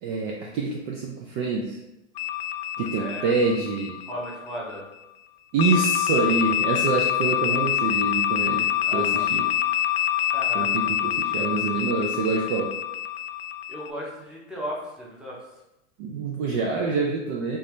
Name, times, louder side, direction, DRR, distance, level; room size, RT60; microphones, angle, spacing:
voice 1, 0.0-1.8 2.8-4.0 5.5-8.7 8.9-9.4 10.5-12.7 16.0-17.6, right 4 dB, 35° right, -1 dB, 0.4 m, -26 dB
sound 1, 2.2-4.7 5.6-13.9, left 12 dB, 45° left, 0.4 m, -26 dB
voice 2, 3.0-3.3 4.1-4.9 8.8-9.2 10.3-10.9 13.7-15.6, equal, ahead, -5 dB, 0.8 m, -36 dB
3.3 x 2.8 x 3.2 m, 0.92 s
hypercardioid pair, 110°, 40 cm